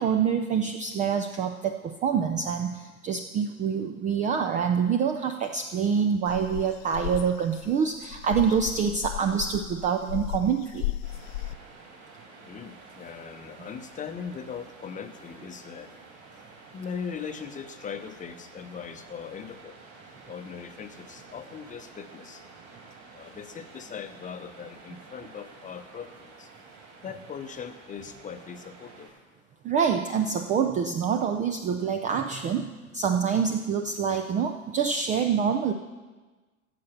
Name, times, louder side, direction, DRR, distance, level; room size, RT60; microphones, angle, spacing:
voice 1, 0.0-10.9 29.6-35.7, right 7 dB, 20° right, 6 dB, 0.4 m, -26 dB
sound 1, 6.3-11.5, left 15 dB, 60° left, 0.7 m, -35 dB
Waves surf, 11.0-29.1, right 3 dB, 50° right, 5.2 m, -50 dB
voice 2, 12.4-16.0 16.3-19.8 20.3-22.4 23.1-26.5 27.0-29.1, left 6 dB, 20° left, 8 dB, 0.8 m, -40 dB
13.5 x 7.6 x 6.6 m, 1.3 s
hypercardioid pair, 95°, 43 cm